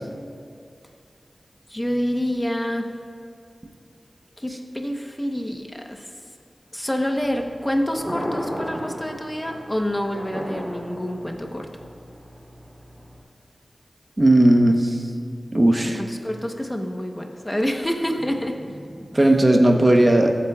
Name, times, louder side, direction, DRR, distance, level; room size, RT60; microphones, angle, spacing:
voice 1, 1.7-2.9 4.4-6.1 6.7-11.7 16.0-19.4, equal, 15° left, 3 dB, 1.0 m, -27 dB
Thunder, 7.2-13.2, equal, 5° right, 2.9 m, -35 dB
voice 2, 14.2-15.0 15.5-16.0 19.1-20.4, right 1 dB, 30° right, 3 dB, 0.9 m, -16 dB
23.0 x 8.4 x 2.4 m, 2.3 s
wide cardioid pair, 60°, 0 cm